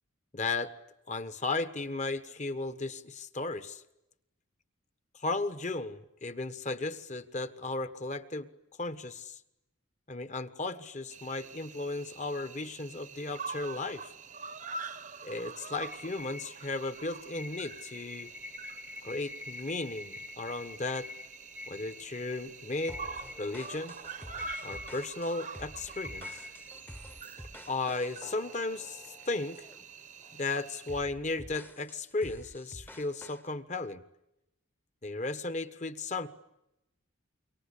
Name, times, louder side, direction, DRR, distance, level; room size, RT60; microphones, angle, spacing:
voice 1, 0.3-0.7 1.1-3.8 5.1-8.5 8.8-9.4 10.1-14.1 15.2-18.3 19.0-21.1 21.7-23.0 23.4-24.0 24.6-26.4 27.7-29.6 30.3-34.0 35.0-36.3, left 3 dB, 35° left, 12 dB, 1.3 m, -35 dB
Cricket, 11.1-31.0, right 5 dB, 35° right, 0.9 m, -46 dB
sound 1, 15.8-27.3, left 3 dB, 10° right, 0.9 m, -47 dB
sound 2, 22.9-29.8 30.2-30.5 30.9-33.5, left 1 dB, 10° left, 1.0 m, -50 dB
27.0 x 24.0 x 8.5 m, 0.89 s
head